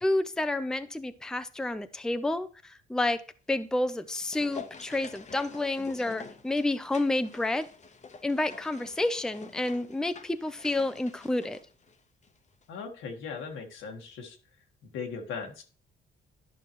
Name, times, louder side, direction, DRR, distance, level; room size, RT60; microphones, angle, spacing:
voice 1, 0.0-3.2 3.5-7.7 8.2-11.6, left 2 dB, 5° left, 0.5 m, -29 dB
sound 1, 3.7-12.4 12.6-12.7, left 5 dB, 35° left, 0.9 m, -48 dB
voice 2, 12.7-14.4 14.9-15.6, left 5 dB, 90° left, 1.5 m, -38 dB
11.0 x 5.6 x 3.0 m
cardioid pair, 90°, 20 cm